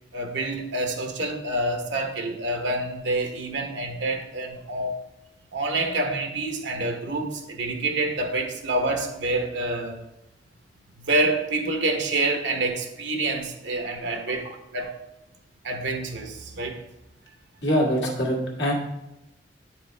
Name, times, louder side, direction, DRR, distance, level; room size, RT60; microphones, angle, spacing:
voice 1, 0.1-5.0 5.5-10.0 11.0-14.9 15.6-16.8, right 2 dB, 85° right, 4 dB, 1.0 m, -27 dB
voice 2, 17.6-18.7, equal, 80° left, -2 dB, 1.9 m, -24 dB
8.5 x 4.9 x 3.3 m, 0.89 s
head